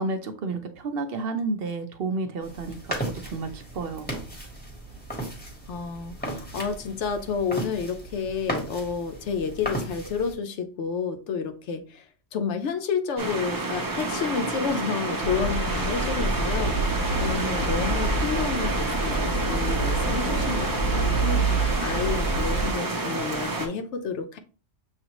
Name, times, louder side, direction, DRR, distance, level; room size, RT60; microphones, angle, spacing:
voice 1, 0.0-4.1, right 3 dB, 60° right, 0.7 m, -31 dB
sound 1, 2.4-10.3, right 1 dB, 10° left, 1.0 m, -36 dB
voice 2, 5.7-12.0 12.3-24.4, left 6 dB, 75° left, 0.9 m, -30 dB
sound 2, 13.2-23.7, right 2 dB, 30° right, 0.4 m, -29 dB
sound 3, 15.2-22.7, right 3 dB, 55° left, 0.5 m, -27 dB
6.7 x 2.4 x 2.9 m
omnidirectional pair, 1.2 m